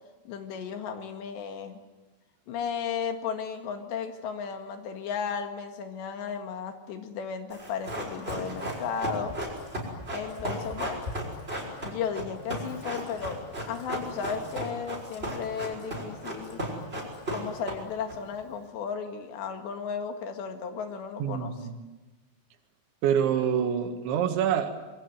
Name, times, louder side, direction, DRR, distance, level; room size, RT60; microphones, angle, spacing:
voice 1, 0.3-1.8 2.5-9.4 10.1-11.1 11.8-16.6 17.3-21.5, left 6 dB, 75° left, 6 dB, 4.0 m, -34 dB
Run, 7.5-18.1 18.4-18.5, equal, 10° right, 6.2 m, -35 dB
voice 2, 21.2-21.7 23.0-24.7, right 8 dB, 85° right, 5 dB, 4.2 m, -26 dB
27.0 x 23.0 x 9.5 m, 1.2 s
omnidirectional pair, 5.2 m